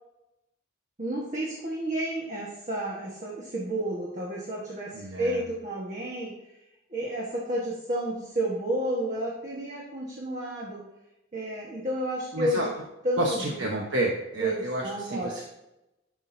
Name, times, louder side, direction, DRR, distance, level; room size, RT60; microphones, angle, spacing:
voice 1, 1.0-6.3 6.9-10.9 11.3-12.7 13.0-13.6 14.4-15.4, right 1 dB, 40° right, -4 dB, 1.4 m, -31 dB
voice 2, 4.9-5.4 12.3-12.7 13.2-14.8 15.1-15.4, right 1 dB, 75° right, -2 dB, 1.2 m, -29 dB
13.0 x 6.1 x 2.8 m, 0.91 s
head